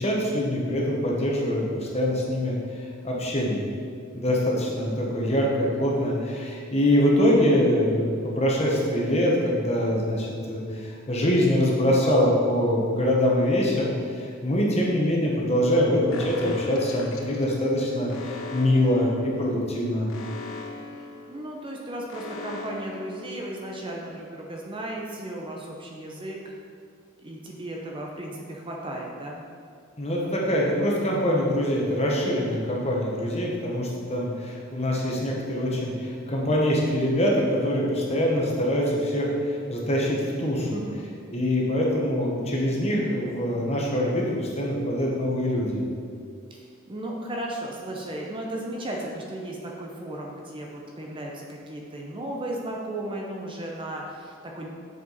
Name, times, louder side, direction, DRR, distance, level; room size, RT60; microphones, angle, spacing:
voice 1, 0.0-3.6 4.1-20.1 30.0-40.8 41.3-45.8, left 1 dB, 30° left, -2 dB, 1.1 m, -24 dB
Alarm, 16.1-23.9, left 3 dB, 75° left, 0.6 m, -40 dB
voice 2, 21.3-26.4 27.2-29.4 40.5-41.0 46.5-54.7, right 1 dB, 25° right, -1 dB, 0.6 m, -35 dB
7.2 x 4.9 x 4.0 m, 2.3 s
head